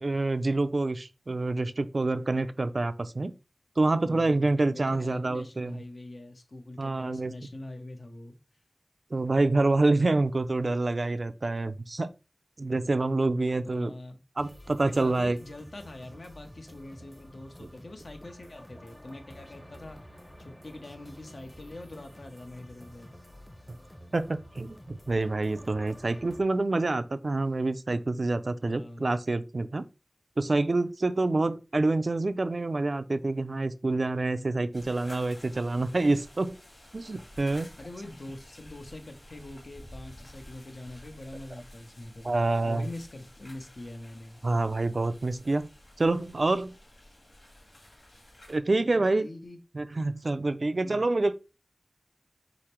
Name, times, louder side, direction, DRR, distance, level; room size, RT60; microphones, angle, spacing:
voice 1, 0.0-3.3 3.8-5.8 6.8-7.3 9.1-12.1 12.6-13.9 14.4-15.4 17.6-17.7 24.1-29.9 30.4-36.6 36.9-37.7 42.2-42.9 44.4-45.7 46.0-46.7 48.5-49.3 49.7-51.3, right 2 dB, 70° right, 0.4 m, -27 dB
voice 2, 4.0-8.4 13.6-14.2 14.8-20.0 20.4-23.1 28.6-29.2 37.8-42.3 42.6-44.4 48.8-49.6 50.6-51.0, left 1 dB, 75° left, 0.8 m, -44 dB
sound 1, 14.4-26.4, equal, 20° left, 0.7 m, -50 dB
sound 2, 34.7-48.6, left 1 dB, 50° left, 1.7 m, -52 dB
4.9 x 2.0 x 4.4 m
wide cardioid pair, 50°, 0 cm